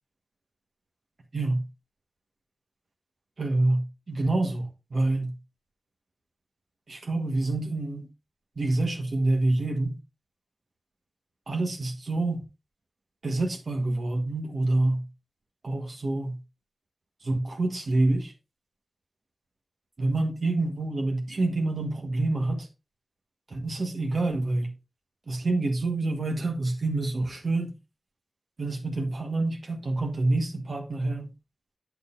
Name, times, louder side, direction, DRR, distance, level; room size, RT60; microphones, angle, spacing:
voice 1, 3.4-5.4 6.9-8.1 8.6-9.9 11.5-12.4 13.2-15.1 15.6-16.4 17.2-18.3 20.0-22.7 23.5-24.7 25.3-27.7 28.6-31.3, right 2 dB, 70° right, 1.4 m, -27 dB
9.3 x 6.4 x 2.6 m
wide cardioid pair, 65°, 0 cm